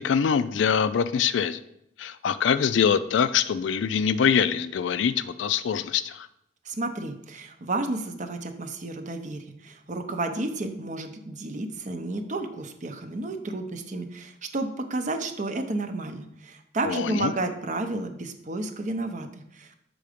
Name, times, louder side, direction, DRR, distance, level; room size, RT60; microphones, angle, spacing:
voice 1, 0.0-1.6 2.0-6.3 16.8-17.3, left 7 dB, 70° left, 13 dB, 0.3 m, -24 dB
voice 2, 6.6-19.8, right 2 dB, 40° right, 7 dB, 0.6 m, -32 dB
6.9 x 3.8 x 5.0 m, 0.78 s
head